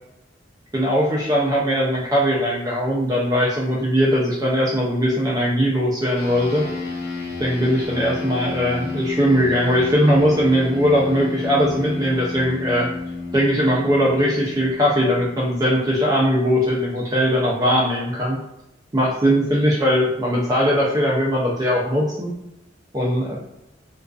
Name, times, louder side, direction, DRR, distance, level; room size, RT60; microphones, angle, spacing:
voice 1, 0.7-6.6 7.4-12.9 13.3-18.4 18.9-22.3 22.9-23.4, equal, 20° right, -4 dB, 0.4 m, -20 dB
sound 1, 6.2-15.9, left 3 dB, 60° left, 0.8 m, -31 dB
2.4 x 2.2 x 2.3 m, 0.90 s
head